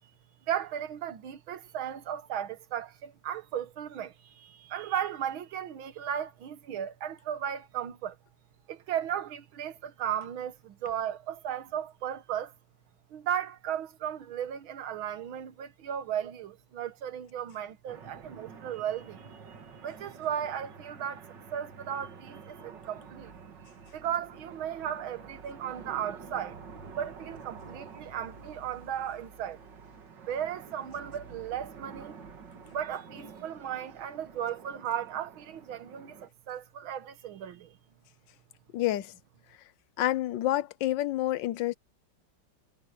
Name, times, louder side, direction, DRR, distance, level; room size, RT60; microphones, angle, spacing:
voice 1, 0.5-8.2 8.7-12.5 13.1-21.3 21.5-23.3 23.9-26.6 27.0-29.6 30.2-32.2 32.7-37.8, right 9 dB, 85° right, 1.9 m, -35 dB
sound 1, 17.9-36.3, right 5 dB, 60° right, 2.4 m, -49 dB
voice 2, 38.7-39.1 40.0-41.7, left 14 dB, 70° left, 1.4 m, -28 dB
omnidirectional pair, 2.2 m